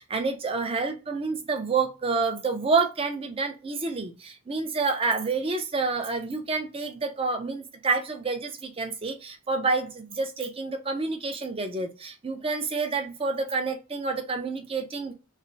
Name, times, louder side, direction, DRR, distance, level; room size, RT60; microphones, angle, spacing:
voice 1, 0.0-15.1, right 4 dB, 25° right, 5 dB, 0.6 m, -28 dB
3.2 x 2.1 x 3.9 m, 0.28 s
head